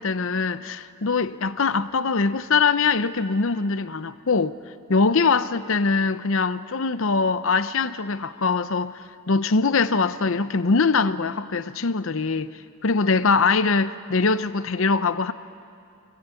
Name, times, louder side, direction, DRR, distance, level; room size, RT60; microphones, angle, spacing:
voice 1, 0.0-4.6 4.9-9.0 9.3-12.5 12.8-15.3, left 4 dB, 60° left, 0.7 m, -22 dB
25.5 x 21.0 x 8.3 m
head